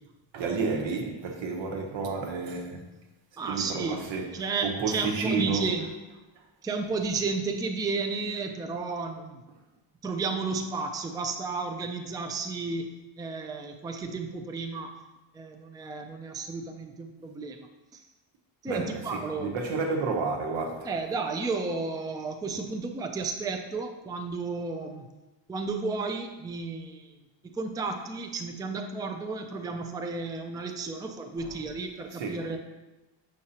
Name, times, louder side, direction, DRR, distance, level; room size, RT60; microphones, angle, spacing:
voice 1, 0.3-2.8 3.5-4.3 4.6-5.7 18.7-20.9 31.4-31.5 32.1-32.4, right 4 dB, 90° right, 1.2 m, -31 dB
voice 2, 3.4-5.9 6.6-9.4 10.0-15.0 15.3-17.7 17.9-18.1 18.6-19.6 20.8-25.1 25.5-32.6, right 4 dB, 10° right, 0.3 m, -33 dB
6.6 x 6.3 x 2.8 m
cardioid pair, 160°, 44 cm